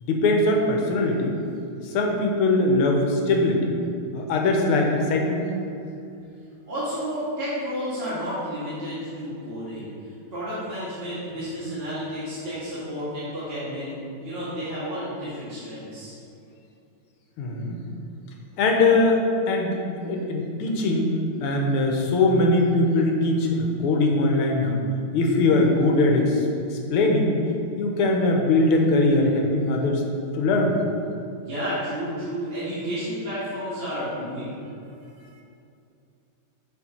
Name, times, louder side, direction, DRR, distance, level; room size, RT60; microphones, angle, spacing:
voice 1, 0.0-1.4 1.8-3.7 4.1-5.5 17.4-17.8 18.6-21.1 21.4-24.8 25.1-27.3 27.8-30.0 30.3-30.7, left 2 dB, 80° left, 1 dB, 1.7 m, -21 dB
voice 2, 6.7-16.1 31.4-34.7 35.2-35.3, equal, 30° right, -11 dB, 1.6 m, -31 dB
7.0 x 4.5 x 4.3 m, 2.6 s
omnidirectional pair, 2.4 m